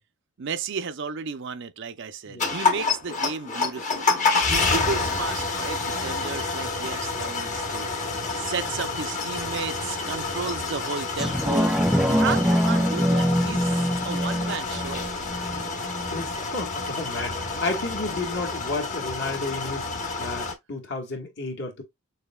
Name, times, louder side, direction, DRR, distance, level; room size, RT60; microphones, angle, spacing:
voice 1, 0.4-11.7 12.1-15.1, right 5 dB, 60° right, 0.5 m, -33 dB
sound 1, 2.4-20.5, left 4 dB, 35° left, 1.0 m, -28 dB
sound 2, 11.2-16.2 16.7-16.8, equal, 5° right, 0.3 m, -24 dB
voice 2, 16.1-21.8, left 3 dB, 55° left, 1.5 m, -32 dB
6.6 x 2.7 x 2.3 m
head